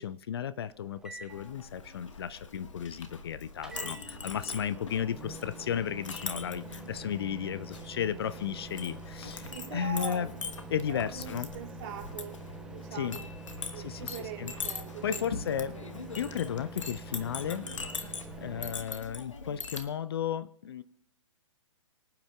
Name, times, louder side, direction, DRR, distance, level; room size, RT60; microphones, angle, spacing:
voice 1, 0.0-10.3 10.7-11.5 12.9-13.2 13.7-14.1 14.4-14.5 15.0-15.8 16.2-17.7 18.4-20.8, left 9 dB, 50° left, 16 dB, 0.4 m, -34 dB
sound 1, 0.7-18.7, right 4 dB, 5° right, 1.0 m, -47 dB
Chink clink, 1.3-19.9, left 4 dB, 65° left, 1.1 m, -42 dB
voice 2, 3.7-4.0 4.5-4.7 9.4-10.3 10.8-12.4 12.7-13.3 13.7-16.0 18.4-18.6, right 9 dB, 40° right, 0 dB, 2.7 m, -43 dB
24.5 x 8.8 x 2.3 m, 0.83 s
figure-of-eight pair, 120°, 17 cm